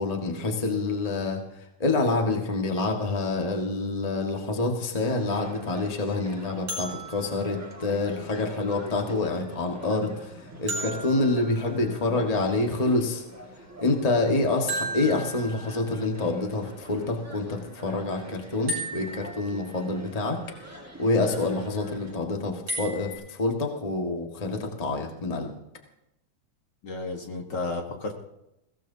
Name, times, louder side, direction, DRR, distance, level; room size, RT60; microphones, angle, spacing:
voice 1, 0.0-1.4 1.8-10.3 10.6-13.2 13.8-20.4 21.0-25.5, left 2 dB, 80° left, 2 dB, 0.3 m, -27 dB
sound 1, 5.2-22.1, right 1 dB, 15° right, 0.6 m, -45 dB
sound 2, 6.7-8.6 10.7-12.5 14.7-16.1 18.7-20.0 22.7-23.1, right 1 dB, 40° right, 7.8 m, -36 dB
voice 2, 26.8-28.1, left 3 dB, 50° left, 2 dB, 1.4 m, -32 dB
22.0 x 17.0 x 2.8 m, 0.86 s
omnidirectional pair, 3.9 m